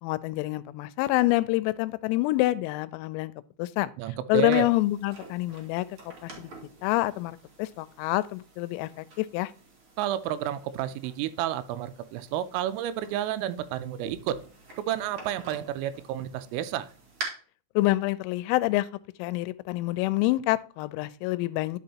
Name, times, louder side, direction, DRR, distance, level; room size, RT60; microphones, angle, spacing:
voice 1, 0.0-3.3 3.6-3.9 4.3-5.9 6.2-6.5 6.8-9.5 17.8-18.9 19.2-21.8, left 18 dB, 90° left, 3.3 m, -27 dB
voice 2, 4.0-4.7 10.0-14.4 14.8-16.9, right 11 dB, 85° right, 3.2 m, -31 dB
sound 1, 4.5-17.2, right 3 dB, 50° right, 1.5 m, -47 dB
10.5 x 5.5 x 2.8 m
omnidirectional pair, 5.9 m